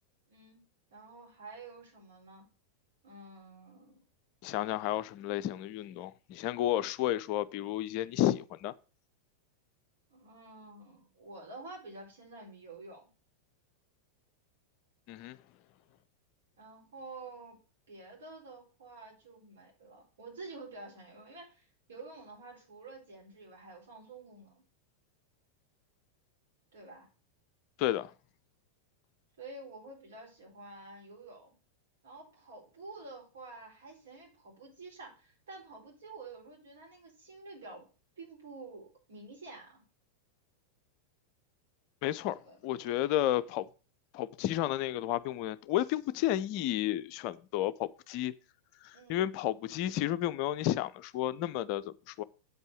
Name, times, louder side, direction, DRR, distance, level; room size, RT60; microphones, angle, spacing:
voice 1, 0.3-2.5 3.0-4.0 10.1-13.0 16.6-17.6 17.9-24.6 26.7-27.1 29.4-31.6 32.0-37.8 38.2-39.8 42.5-42.6 48.9-49.2, right 3 dB, 60° right, 4.3 m, -49 dB
voice 2, 4.4-8.7 15.1-15.4 27.8-28.1 42.0-43.7 44.1-48.3 48.8-52.2, left 13 dB, 45° left, 0.4 m, -32 dB
8.0 x 5.4 x 6.4 m
figure-of-eight pair, 90°, 0 cm